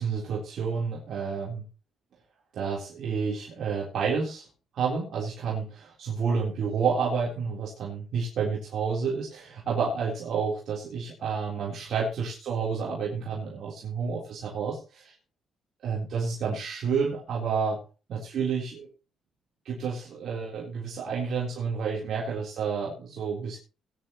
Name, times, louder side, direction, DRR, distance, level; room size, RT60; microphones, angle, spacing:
voice 1, 0.0-1.6 2.5-4.5 4.7-15.1 15.8-17.8 18.1-18.9 19.7-23.6, right 5 dB, 65° right, -3 dB, 3.8 m, -30 dB
19.5 x 10.0 x 3.1 m, 0.33 s
cardioid pair, 90°, 0 cm